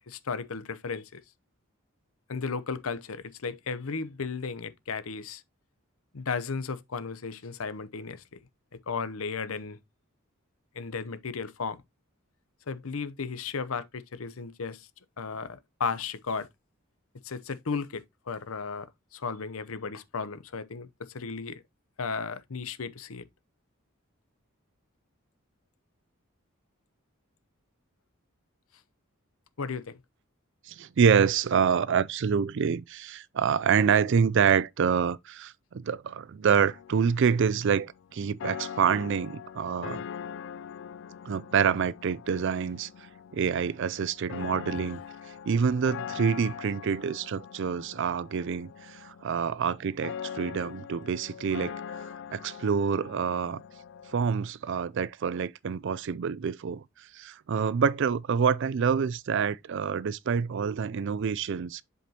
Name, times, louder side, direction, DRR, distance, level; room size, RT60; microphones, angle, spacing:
voice 1, 0.1-1.2 2.3-5.4 6.1-8.4 8.9-9.8 10.7-11.8 12.7-14.9 15.2-16.5 17.2-18.9 19.1-21.6 22.0-23.3 29.6-30.0, left 5 dB, 80° left, 0.7 m, -35 dB
voice 2, 30.7-40.0 41.2-42.9 43.3-45.0 45.5-51.8 52.3-53.6 54.1-61.8, right 6 dB, 60° right, 0.4 m, -27 dB
sound 1, 36.7-54.3, left 8 dB, 60° left, 0.3 m, -42 dB
7.8 x 5.0 x 2.8 m
head